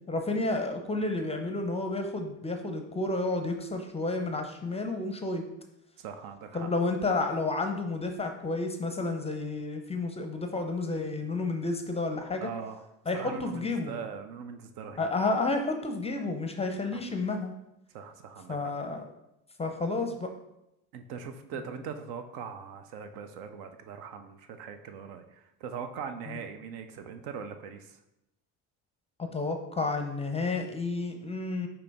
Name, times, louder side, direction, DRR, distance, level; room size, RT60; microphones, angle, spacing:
voice 1, 0.1-5.4 6.5-12.5 13.1-14.0 15.0-17.5 18.5-19.1 19.6-20.3 26.3-26.4 29.2-31.7, left 3 dB, 15° left, 5 dB, 0.5 m, -31 dB
voice 2, 6.0-6.7 12.4-12.9 13.1-15.1 16.9-17.0 17.9-18.7 20.9-28.0, right 6 dB, 70° right, 8 dB, 0.6 m, -41 dB
5.1 x 3.0 x 3.4 m, 0.86 s
supercardioid pair, 80°, 39 cm